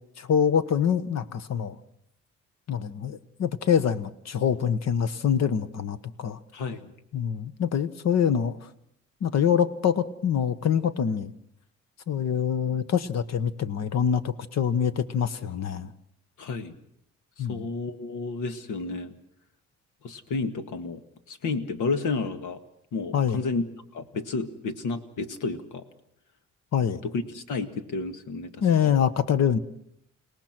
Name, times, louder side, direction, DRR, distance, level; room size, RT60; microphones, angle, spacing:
voice 1, 0.2-1.7 2.7-6.4 7.1-8.6 9.2-11.3 12.1-15.9 17.4-17.7 23.1-23.4 26.7-27.0 28.6-29.6, left 8 dB, 60° left, 15 dB, 1.2 m, -25 dB
voice 2, 6.5-6.9 16.4-16.8 17.4-19.2 20.0-21.0 21.3-22.6 22.9-25.9 27.0-28.7, left 3 dB, 75° left, 9 dB, 1.9 m, -31 dB
29.5 x 18.5 x 6.1 m, 0.73 s
cardioid pair, 130°, 31 cm